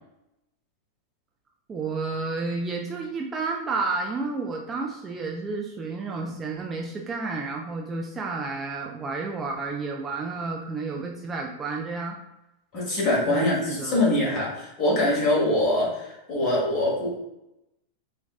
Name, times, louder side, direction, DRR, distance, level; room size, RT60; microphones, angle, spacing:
voice 1, 1.7-12.2 13.3-14.0, right 3 dB, 20° right, 0 dB, 0.3 m, -31 dB
voice 2, 12.7-17.2, left 1 dB, 35° left, -4 dB, 1.3 m, -24 dB
3.4 x 2.3 x 2.3 m, 0.92 s
figure-of-eight pair, 90°, 0 cm